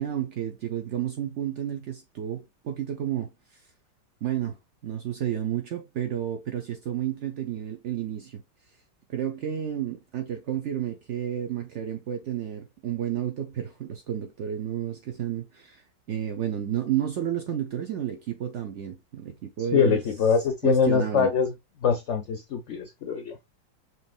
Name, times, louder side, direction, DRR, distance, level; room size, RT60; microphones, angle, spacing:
voice 1, 0.0-3.3 4.2-4.6 4.8-8.4 9.1-15.8 16.1-20.0 20.6-21.3, right 10 dB, 90° right, 0.6 m, -31 dB
voice 2, 19.7-21.5 21.8-23.4, left 6 dB, 70° left, 0.7 m, -23 dB
5.5 x 3.1 x 2.2 m
omnidirectional pair, 2.0 m